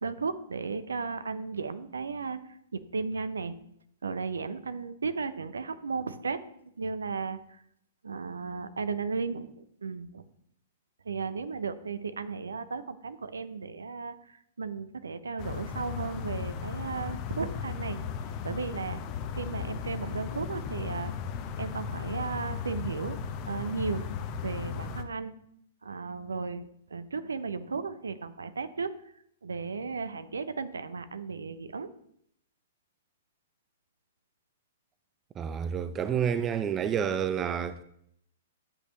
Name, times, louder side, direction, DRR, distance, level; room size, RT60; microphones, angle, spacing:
voice 1, 0.0-2.4 2.7-3.6 4.0-6.4 6.8-7.4 8.0-10.2 11.1-14.2 14.6-18.0 18.4-19.0 19.3-21.1 21.6-23.2 23.5-24.1 24.4-25.3 25.8-26.6 26.9-28.9 29.4-31.9, right 4 dB, 70° right, 0.7 m, -35 dB
sound 1, 15.4-25.0, left 6 dB, 35° left, 0.9 m, -36 dB
voice 2, 35.4-37.8, right 8 dB, 20° right, 0.5 m, -29 dB
12.0 x 8.0 x 3.1 m
figure-of-eight pair, 110°, 0 cm